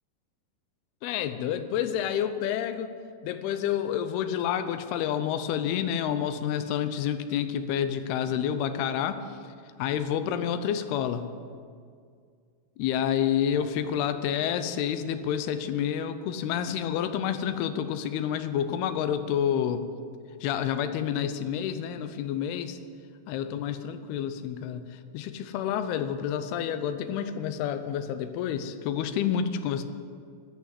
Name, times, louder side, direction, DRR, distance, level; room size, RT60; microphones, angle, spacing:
voice 1, 1.0-2.9 3.2-9.4 9.8-11.2 12.8-19.9 20.4-22.8 23.3-29.8, left 9 dB, 80° left, 10 dB, 2.5 m, -29 dB
14.5 x 6.3 x 9.6 m, 2.2 s
omnidirectional pair, 5.0 m